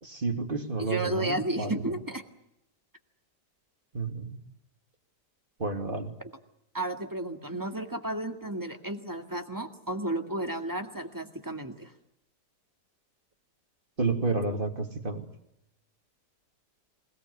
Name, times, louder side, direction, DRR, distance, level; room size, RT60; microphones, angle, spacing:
voice 1, 0.0-1.7 3.9-4.4 5.6-6.1 14.0-15.2, right 3 dB, 30° right, 4 dB, 2.8 m, -30 dB
voice 2, 0.8-2.2 6.2-6.3 6.7-11.9, right 1 dB, 10° right, 4 dB, 1.9 m, -33 dB
27.5 x 18.0 x 8.4 m, 0.81 s
omnidirectional pair, 1.8 m